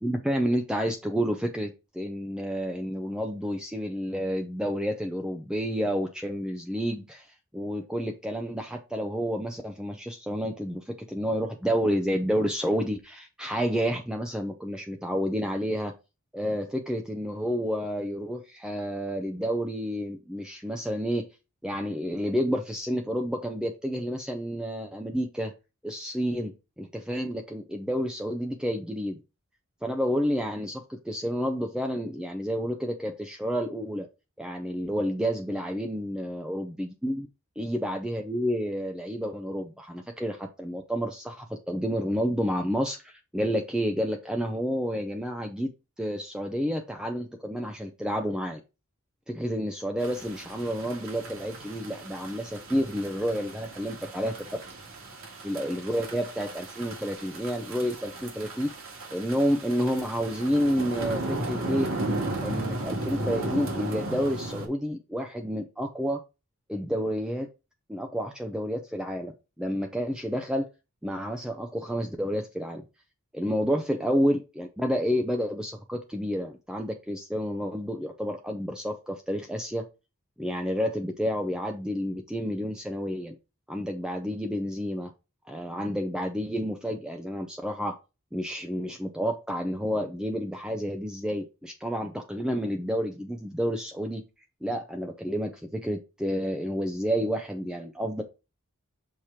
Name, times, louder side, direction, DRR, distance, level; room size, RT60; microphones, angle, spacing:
voice 1, 0.0-15.9 16.3-21.2 21.6-25.5 25.8-29.2 29.8-34.1 34.4-37.3 37.6-45.7 46.0-48.6 49.3-54.3 55.4-58.7 59.1-61.9 62.4-66.2 66.7-67.5 67.9-69.3 69.6-70.7 71.0-72.8 73.3-79.8 80.4-83.3 83.7-85.1 85.5-87.9 88.3-94.2 94.6-98.2, equal, 5° right, 3 dB, 0.5 m, -30 dB
sound 1, 50.0-64.7, right 2 dB, 65° right, 1.9 m, -35 dB
6.5 x 3.0 x 5.5 m, 0.29 s
head